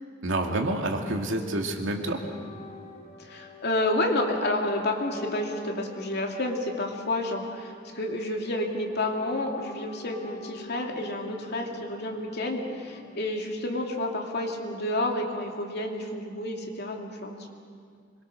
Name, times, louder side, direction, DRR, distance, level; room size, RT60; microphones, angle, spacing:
voice 1, 0.2-2.3, right 1 dB, 75° right, 2 dB, 2.4 m, -28 dB
sound 1, 2.3-13.2, left 2 dB, 35° left, 2.7 m, -47 dB
voice 2, 3.2-17.5, left 1 dB, 55° left, 1 dB, 2.8 m, -30 dB
25.5 x 22.5 x 6.5 m, 2.1 s
head